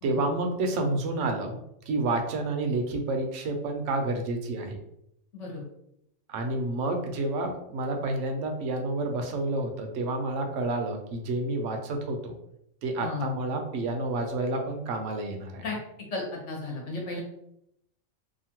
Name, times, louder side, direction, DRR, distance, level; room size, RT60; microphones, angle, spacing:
voice 1, 0.0-4.8 6.3-12.4 12.8-15.6, right 2 dB, 70° right, 4 dB, 0.8 m, -29 dB
voice 2, 13.0-13.3 15.6-15.7 16.1-17.2, left 3 dB, 60° left, -2 dB, 1.2 m, -34 dB
2.8 x 2.4 x 2.8 m, 0.77 s
omnidirectional pair, 1.4 m